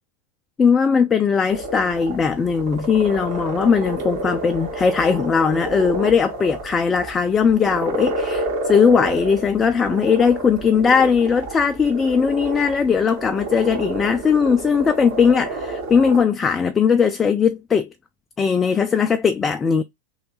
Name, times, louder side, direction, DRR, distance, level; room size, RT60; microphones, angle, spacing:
voice 1, 0.6-17.9 18.4-19.8, left 6 dB, 20° left, 0.3 m, -19 dB
sound 1, 1.5-16.2, right 2 dB, 55° right, 1.4 m, -30 dB
3.1 x 2.8 x 3.1 m
figure-of-eight pair, 90°, 0 cm